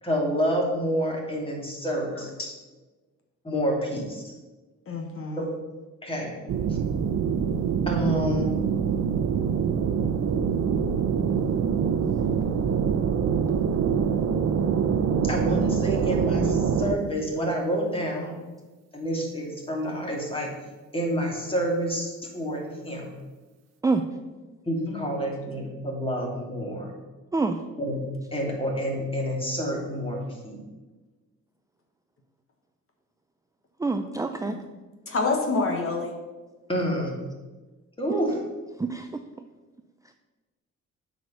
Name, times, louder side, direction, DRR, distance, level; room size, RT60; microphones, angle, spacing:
voice 1, 0.0-2.3 3.4-4.3 5.4-5.5 6.0-6.4 6.7-6.8 7.9-8.5 15.2-18.4 18.9-20.5 20.9-23.1 24.6-26.9 27.8-28.0 28.3-30.2 30.4-30.6 36.7-37.2 38.0-38.4, equal, 20° left, -1 dB, 2.8 m, -28 dB
voice 2, 2.1-2.5 4.9-5.5 24.9-25.2 30.2-30.3 34.4-34.6 35.1-36.1, left 3 dB, 45° left, 2 dB, 1.4 m, -28 dB
sound 1, 6.5-17.0, right 7 dB, 60° right, 0.8 m, -25 dB
voice 3, 33.8-34.6 38.8-39.1, right 3 dB, 10° right, 6 dB, 0.5 m, -26 dB
7.7 x 5.0 x 6.9 m, 1.2 s
cardioid pair, 90°, 30 cm